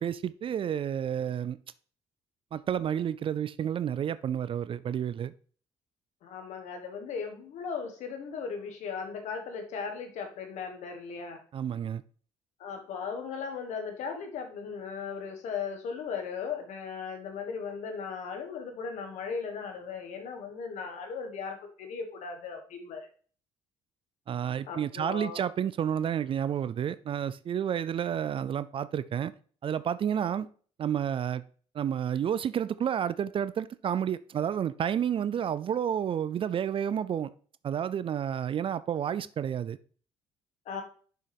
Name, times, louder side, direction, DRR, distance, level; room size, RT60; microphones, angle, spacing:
voice 1, 0.0-1.6 2.5-5.3 11.5-12.0 24.3-29.3 29.6-30.5 30.8-31.4 31.7-37.3 37.6-39.8, right 9 dB, 45° right, 0.4 m, -30 dB
voice 2, 6.2-11.4 12.6-23.1 24.7-25.5 40.6-40.8, left 5 dB, 70° left, 1.5 m, -37 dB
6.7 x 6.1 x 3.4 m
supercardioid pair, 70°, 13 cm